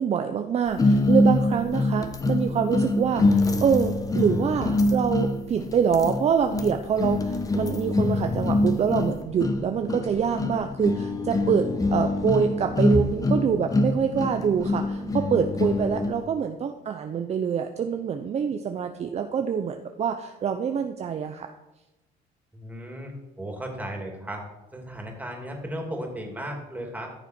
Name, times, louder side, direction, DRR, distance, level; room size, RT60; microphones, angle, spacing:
voice 1, 0.0-21.5, right 7 dB, 40° right, 6 dB, 0.7 m, -25 dB
sound 1, 0.8-16.2, left 2 dB, 20° left, 1.0 m, -25 dB
voice 2, 22.5-24.4 24.7-27.1, right 1 dB, 10° right, 1 dB, 2.8 m, -35 dB
14.0 x 6.7 x 4.5 m, 0.99 s
cardioid pair, 110°, 17 cm